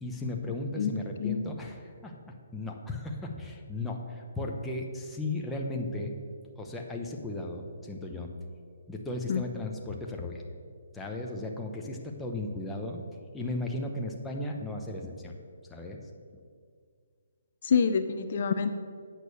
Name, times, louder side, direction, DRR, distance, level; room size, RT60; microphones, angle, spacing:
voice 1, 0.0-6.1 6.6-8.3 8.9-10.4 10.9-13.0 13.3-15.3 15.7-16.1, left 2 dB, 10° left, 0 dB, 0.9 m, -36 dB
voice 2, 0.8-1.4 9.3-9.4 17.6-18.7, left 6 dB, 55° left, 9 dB, 0.6 m, -27 dB
8.5 x 6.1 x 6.9 m, 2.1 s
hypercardioid pair, 150°, 0 cm